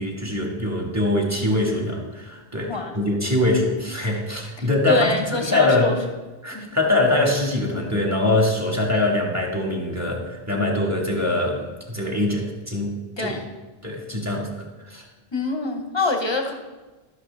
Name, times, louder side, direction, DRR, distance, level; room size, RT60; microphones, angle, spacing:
voice 1, 0.0-5.1 5.5-6.0 6.4-12.9 13.2-13.3 13.8-15.0, left 2 dB, 15° right, 0 dB, 1.4 m, -23 dB
voice 2, 4.6-5.9 6.5-6.8 13.2-13.4 15.3-16.5, left 2 dB, 30° left, 4 dB, 0.9 m, -25 dB
13.0 x 6.3 x 3.3 m, 1.2 s
omnidirectional pair, 1.0 m